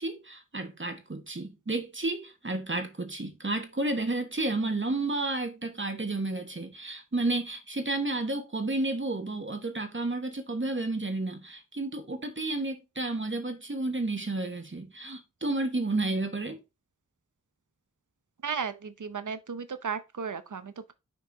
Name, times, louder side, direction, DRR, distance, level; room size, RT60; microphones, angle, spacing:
voice 1, 0.0-16.6, right 2 dB, 40° right, 1.2 m, -31 dB
voice 2, 18.4-20.9, right 6 dB, 80° right, 0.8 m, -35 dB
6.1 x 4.8 x 3.9 m
wide cardioid pair, 45°, 30 cm